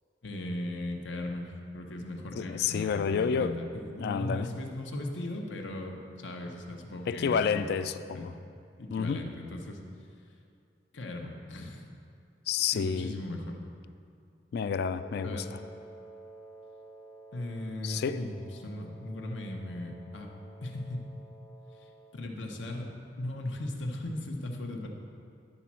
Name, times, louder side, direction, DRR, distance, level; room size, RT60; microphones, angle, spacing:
voice 1, 0.2-7.7 8.1-8.4 8.8-9.8 10.9-11.9 12.7-13.6 15.2-15.5 17.3-20.3 20.6-21.1 21.8-24.9, left 1 dB, 85° left, 1 dB, 0.9 m, -38 dB
voice 2, 2.4-3.6 4.0-4.5 7.1-8.4 8.9-9.3 12.5-13.2 14.5-15.4 17.8-18.3, left 6 dB, 60° left, 12 dB, 0.3 m, -30 dB
Wind instrument woodwind instrument, 15.0-22.3, right 1 dB, 5° left, 0.5 m, -52 dB
11.0 x 4.2 x 6.0 m, 2.5 s
head